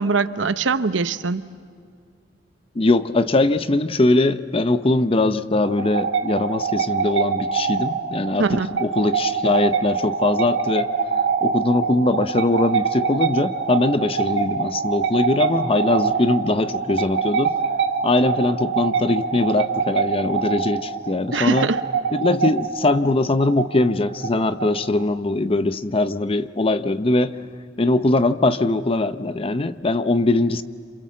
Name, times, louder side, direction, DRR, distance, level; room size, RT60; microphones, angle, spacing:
voice 1, 0.0-1.5 8.4-8.7 21.3-21.8, right 4 dB, 90° right, 13 dB, 0.8 m, -22 dB
voice 2, 2.8-10.9 11.4-17.5 18.0-21.7 22.1-27.4 27.8-30.6, left 2 dB, 30° left, 12 dB, 0.7 m, -21 dB
sound 1, 5.6-25.0, right 6 dB, 70° right, 1.8 m, -24 dB
28.0 x 27.5 x 7.5 m, 2.1 s
head